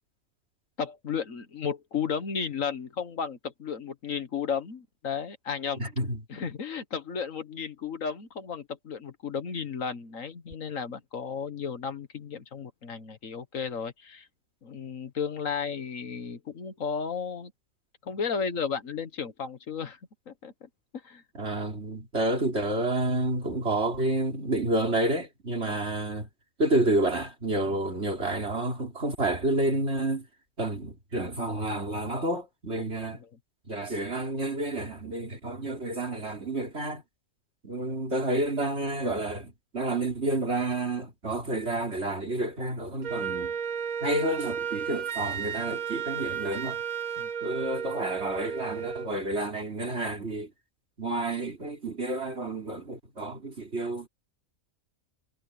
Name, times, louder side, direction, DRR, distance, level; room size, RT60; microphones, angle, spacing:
voice 1, 0.8-5.8 6.3-14.3 14.6-17.5 18.0-20.0 20.3-20.7 21.0-21.2 25.6-25.8 27.6-27.8 32.7-32.9 33.1-33.3 37.7-37.9 47.2-47.3, left 6 dB, 70° left, 1.9 m, -34 dB
voice 2, 5.8-6.2 21.3-26.3 26.6-30.3 30.6-33.2 33.7-37.0 37.6-43.5 44.0-46.8 47.4-50.5 51.0-54.1, right 2 dB, 50° right, 4.1 m, -29 dB
Wind instrument woodwind instrument, 43.0-49.1, right 7 dB, 90° right, 1.7 m, -33 dB
omnidirectional pair, 1.4 m